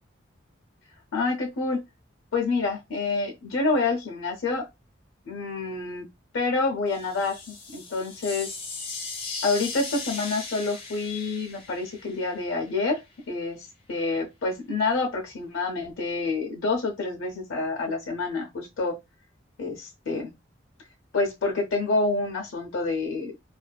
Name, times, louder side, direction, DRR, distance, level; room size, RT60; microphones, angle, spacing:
voice 1, 1.1-1.8 2.3-4.7 5.3-6.1 6.3-8.6 9.4-13.0 13.3-18.9 19.6-20.3 21.1-23.3, left 3 dB, 85° left, 0.6 m, -28 dB
sound 1, 6.9-12.8, left 4 dB, 30° left, 0.6 m, -38 dB
2.5 x 2.3 x 2.2 m
head